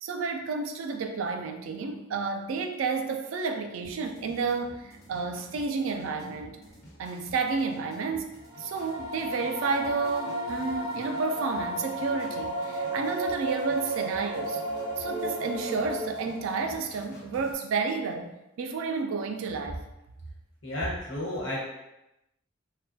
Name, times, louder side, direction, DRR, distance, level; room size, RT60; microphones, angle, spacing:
voice 1, 0.0-6.6 7.0-14.6 15.0-19.8, right 4 dB, 80° right, 5 dB, 0.3 m, -31 dB
sound 1, 3.8-17.5, equal, 50° left, 0.9 m, -52 dB
sound 2, 8.4-16.6, right 1 dB, 15° right, 1.5 m, -33 dB
voice 2, 20.6-21.6, left 1 dB, 75° left, -5 dB, 1.1 m, -32 dB
3.0 x 2.2 x 2.6 m, 0.92 s
head